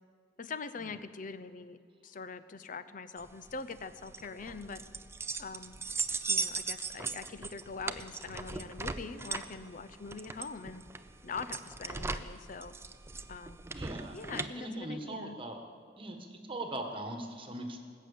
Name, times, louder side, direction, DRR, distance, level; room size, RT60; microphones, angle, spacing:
voice 1, 0.4-4.8 5.4-5.8 6.3-10.8 11.2-12.7 13.3-13.6 14.1-15.4, left 4 dB, 45° left, 13 dB, 0.6 m, -43 dB
sound 1, 3.2-14.5, right 3 dB, 15° right, 0.5 m, -38 dB
voice 2, 13.7-15.6 16.0-17.8, right 1 dB, 30° right, 4 dB, 1.5 m, -40 dB
19.0 x 7.5 x 8.5 m, 2.2 s
head